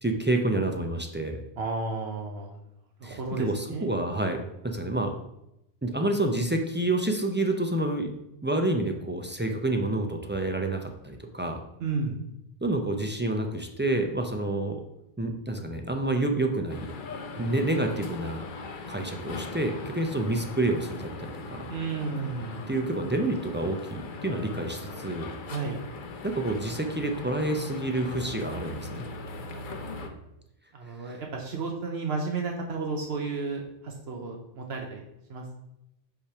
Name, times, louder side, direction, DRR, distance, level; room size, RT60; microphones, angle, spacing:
voice 1, 0.0-1.4 3.0-5.1 5.8-8.1 8.4-11.6 12.6-14.8 15.2-16.9 17.4-18.5 18.9-21.7 22.7-25.3 26.2-29.0 31.0-31.2, right 2 dB, 20° right, 3 dB, 0.3 m, -28 dB
voice 2, 1.6-2.6 3.0-3.9 11.8-12.2 17.3-17.6 21.7-22.6 25.5-25.8 29.5-29.9 30.7-35.0 35.3-35.4, right 4 dB, 75° right, 1 dB, 1.0 m, -33 dB
sound 1, 16.7-30.1, left 3 dB, 55° left, 0.8 m, -40 dB
5.5 x 3.3 x 5.7 m, 0.85 s
omnidirectional pair, 1.1 m